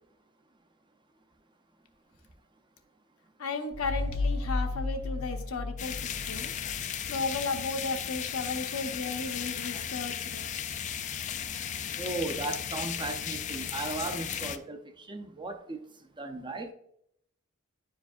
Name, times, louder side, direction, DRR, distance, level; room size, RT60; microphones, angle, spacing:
voice 1, 3.4-6.5 7.1-10.4, left 3 dB, 75° left, 0.9 m, -34 dB
sound 1, 3.7-7.1, left 3 dB, 40° right, 1.5 m, -33 dB
sound 2, 5.8-14.6, left 9 dB, 35° left, 0.3 m, -35 dB
voice 2, 12.0-15.8 16.2-16.7, right 2 dB, 20° right, 0.5 m, -36 dB
10.5 x 4.7 x 2.4 m
head